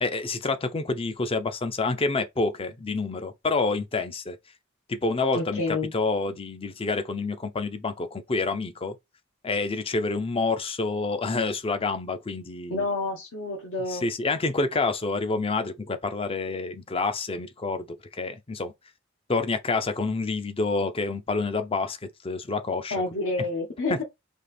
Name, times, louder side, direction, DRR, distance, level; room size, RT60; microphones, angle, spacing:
voice 1, 0.0-4.4 4.9-9.0 9.4-12.8 13.9-18.7 19.3-23.0 23.9-24.0, left 3 dB, 25° left, 0.6 m, -28 dB
voice 2, 5.3-5.9 12.7-14.1 22.9-24.0, left 3 dB, 70° left, 1.3 m, -29 dB
4.1 x 2.8 x 3.3 m
head